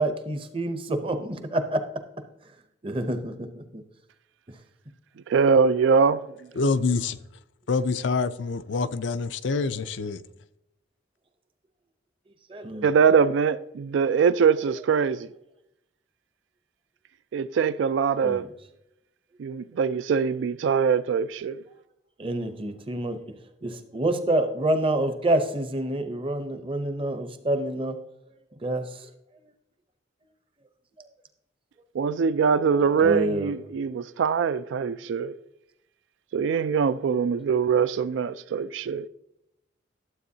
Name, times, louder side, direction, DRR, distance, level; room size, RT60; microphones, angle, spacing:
voice 1, 0.0-1.8 2.8-3.8 12.5-12.9 18.2-18.5 22.2-23.4 23.6-28.0 28.6-29.1 31.0-31.1 33.0-33.5, right 1 dB, 30° right, 0.7 m, -27 dB
voice 2, 5.3-6.3 12.8-15.3 17.3-18.5 19.4-21.6 31.9-35.4 36.3-39.1, right 6 dB, 75° right, 0.3 m, -23 dB
voice 3, 6.6-7.2 7.7-10.2, left 4 dB, 70° left, 0.5 m, -26 dB
12.0 x 7.7 x 2.8 m
head